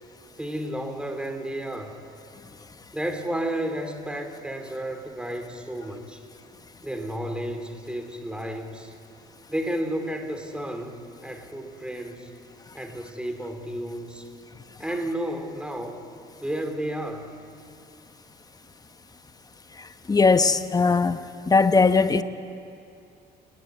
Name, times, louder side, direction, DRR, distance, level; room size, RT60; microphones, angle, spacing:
voice 1, 0.4-2.0 2.9-6.2 6.8-8.9 9.5-12.3 12.7-14.3 14.8-16.0 16.4-17.3, right 1 dB, 5° right, 6 dB, 3.0 m, -32 dB
voice 2, 19.8-21.2 21.5-22.2, left 4 dB, 20° left, 11 dB, 1.1 m, -20 dB
28.0 x 19.5 x 9.6 m, 2.6 s
cardioid pair, 110°, 17 cm